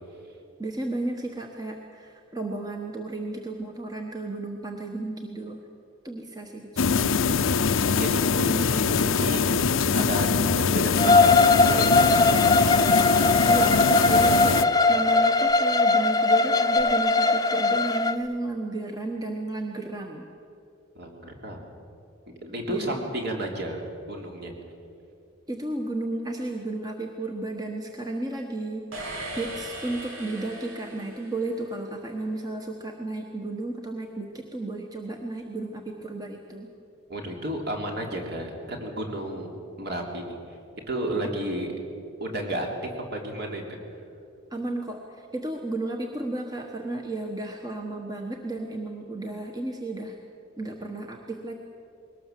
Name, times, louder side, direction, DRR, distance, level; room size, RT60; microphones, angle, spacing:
voice 1, 0.6-5.6 6.0-7.1 13.5-20.3 22.7-23.0 25.5-36.7 44.5-50.2 50.6-51.5, right 2 dB, 20° right, 2 dB, 1.3 m, -33 dB
sound 1, 6.8-14.6, left 5 dB, 75° left, 0.6 m, -23 dB
voice 2, 7.7-9.5 9.9-12.0 20.9-21.7 22.4-24.5 37.1-39.5 39.8-40.4 40.9-41.7 42.2-42.7 43.1-43.8, right 1 dB, 55° right, 1 dB, 3.4 m, -32 dB
Bowed string instrument, 11.0-18.2, left 3 dB, 20° left, 0.6 m, -20 dB
sound 2, 28.9-31.8, right 1 dB, 85° right, 3.8 m, -38 dB
21.5 x 19.0 x 7.6 m, 2.6 s
head